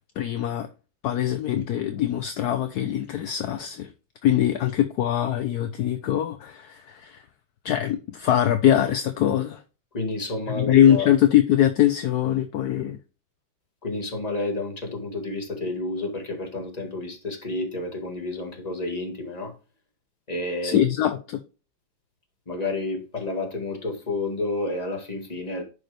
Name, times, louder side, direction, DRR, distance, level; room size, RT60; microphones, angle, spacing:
voice 1, 0.2-0.7 1.0-3.9 4.2-7.2 7.6-9.6 10.6-13.0 20.6-21.4, left 11 dB, 65° left, 1.0 m, -22 dB
voice 2, 9.9-11.1 13.8-19.6 20.3-20.8 22.5-25.6, left 2 dB, 20° left, 1.9 m, -30 dB
10.5 x 5.3 x 3.4 m
omnidirectional pair, 2.2 m